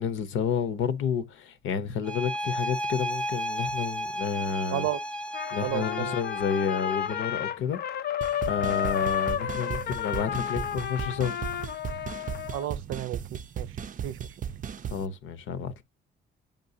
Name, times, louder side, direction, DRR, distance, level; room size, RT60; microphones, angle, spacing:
voice 1, 0.0-4.9 5.5-7.8 8.5-11.3 14.9-15.7, left 7 dB, 80° left, 0.8 m, -30 dB
sound 1, 2.0-7.3, equal, 5° left, 0.6 m, -34 dB
Trumpet, 5.3-12.7, left 10 dB, 55° left, 0.5 m, -31 dB
voice 2, 5.6-6.2 12.5-13.7 14.0-14.2, right 13 dB, 85° right, 0.6 m, -32 dB
sound 2, 8.2-15.1, right 8 dB, 40° right, 0.5 m, -36 dB
7.6 x 5.3 x 2.7 m
cardioid pair, 90°, 20 cm